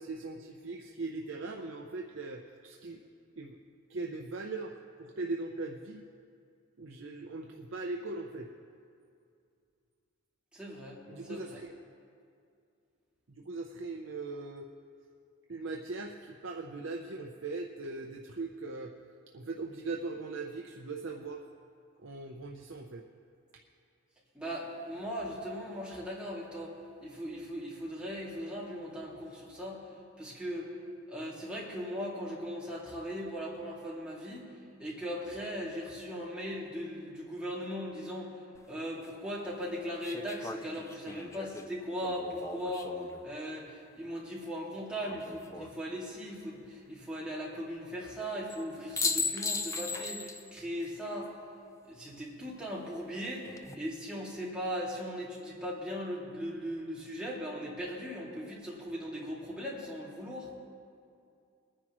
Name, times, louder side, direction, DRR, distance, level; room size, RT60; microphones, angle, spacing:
voice 1, 0.0-3.0 3.4-3.6 3.9-6.0 6.8-8.5 11.1-11.7 13.3-14.7 15.5-18.9 19.3-21.4 22.0-23.0, right 3 dB, 60° right, 1 dB, 0.6 m, -40 dB
voice 2, 10.5-11.0 11.3-11.6 24.3-26.7 27.0-29.8 30.2-30.7 31.1-34.5 34.8-38.3 38.7-51.3 51.8-60.5, equal, 5° right, -7 dB, 2.3 m, -38 dB
sound 1, 38.5-38.6 40.0-43.2 45.1-45.7 48.5-48.6 49.0-50.5 50.8-50.9 53.2-53.7, left 4 dB, 15° left, 0.4 m, -37 dB
23.0 x 9.9 x 3.1 m, 2.4 s
head